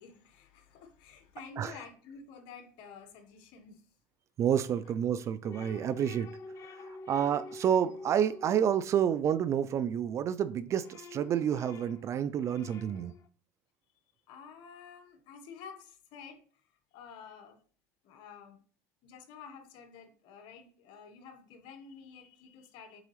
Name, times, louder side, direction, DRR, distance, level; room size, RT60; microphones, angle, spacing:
voice 1, 0.0-3.8 4.8-4.9 14.3-17.6 18.0-18.6 19.0-23.0, left 6 dB, 65° left, 1.3 m, -50 dB
voice 2, 4.4-6.3 6.7-13.1, right 9 dB, 40° right, 0.3 m, -29 dB
sound 1, 5.4-10.1 10.5-13.3, left 2 dB, 40° left, 0.5 m, -48 dB
7.5 x 4.0 x 3.1 m
supercardioid pair, 115°, 8 cm